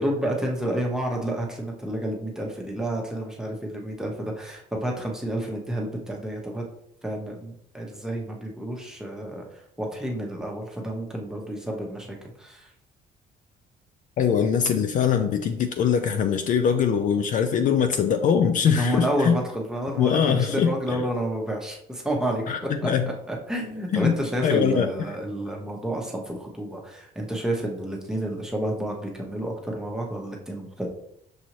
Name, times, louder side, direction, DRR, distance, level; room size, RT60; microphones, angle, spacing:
voice 1, 0.0-6.6 7.0-12.7 18.6-22.9 23.3-30.9, right 1 dB, 5° right, -1 dB, 1.0 m, -30 dB
voice 2, 14.2-19.4 20.0-21.0 22.5-23.1 23.9-24.1 24.4-24.9, left 7 dB, 50° left, 6 dB, 0.4 m, -22 dB
6.2 x 2.6 x 3.0 m, 0.74 s
cardioid pair, 110°, 17 cm